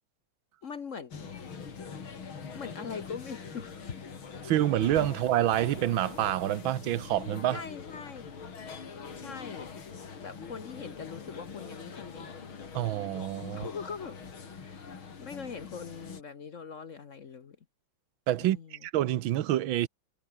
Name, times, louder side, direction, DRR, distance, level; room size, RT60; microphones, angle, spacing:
voice 1, 0.6-1.4 2.5-4.1 7.5-8.4 9.1-9.7 10.2-12.4 13.5-14.2 14.5-17.6 18.4-18.9, left 6 dB, 45° left, 1.2 m, -42 dB
sound 1, 1.1-16.2, left 5 dB, 90° left, 3.6 m, -43 dB
voice 2, 4.4-7.6 12.7-13.7 18.3-19.9, right 13 dB, 80° right, 1.6 m, -27 dB
omnidirectional pair, 2.2 m